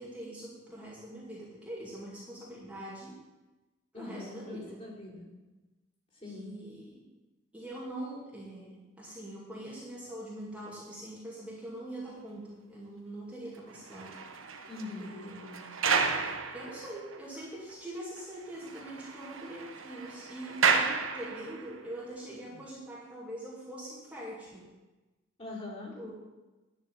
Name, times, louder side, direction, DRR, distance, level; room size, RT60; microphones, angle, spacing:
voice 1, 0.0-3.2 3.9-4.8 6.2-7.0 7.5-14.2 15.0-15.7 16.5-24.6 26.0-26.1, right 1 dB, 5° right, -7 dB, 2.2 m, -43 dB
voice 2, 3.9-5.3 6.2-6.5 14.7-15.1 25.4-26.0, left 3 dB, 30° left, -5 dB, 4.0 m, -42 dB
sound 1, 13.7-17.4 17.7-17.8 18.2-18.3 18.5-21.8 22.5-22.7, right 5 dB, 75° right, 1.2 m, -32 dB
10.5 x 6.7 x 8.8 m, 1.1 s
head